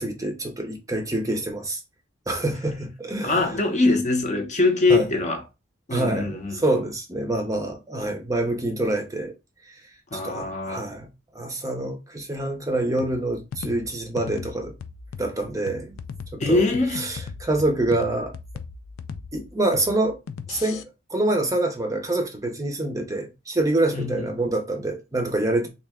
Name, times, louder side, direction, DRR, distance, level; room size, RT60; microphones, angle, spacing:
voice 1, 0.0-1.8 2.3-3.5 4.9-5.1 5.9-9.3 10.2-11.1 11.3-14.7 15.2-16.0 16.3-16.6 17.0-18.3 19.3-20.2 20.5-20.8 21.1-25.7, right 2 dB, 15° right, 0.6 m, -26 dB
voice 2, 3.2-5.4 5.9-6.6 10.1-10.9 16.4-17.1 23.9-24.3, left 3 dB, 35° left, 0.6 m, -23 dB
sound 1, 13.0-20.8, left 6 dB, 75° left, 0.4 m, -38 dB
3.3 x 2.6 x 3.4 m
head